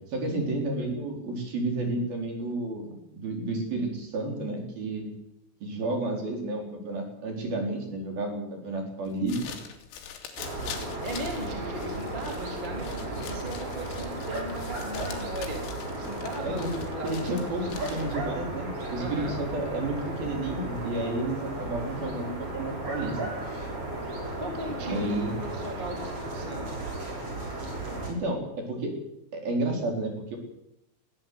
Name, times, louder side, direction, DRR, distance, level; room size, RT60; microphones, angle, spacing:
voice 1, 0.1-5.1 5.6-9.5 16.4-16.7 17.0-23.2 24.8-25.3 28.1-28.9 29.3-30.4, right 2 dB, 50° right, 2 dB, 5.9 m, -31 dB
sound 1, 9.1-18.3, left 8 dB, 85° left, 5.2 m, -44 dB
sound 2, 10.4-28.1, right 2 dB, 30° right, 6.3 m, -35 dB
voice 2, 11.0-15.6 15.9-17.3 17.8-18.3 18.9-19.4 24.4-26.7, equal, 10° right, 2 dB, 2.9 m, -37 dB
20.0 x 16.0 x 8.2 m, 0.82 s
omnidirectional pair, 5.8 m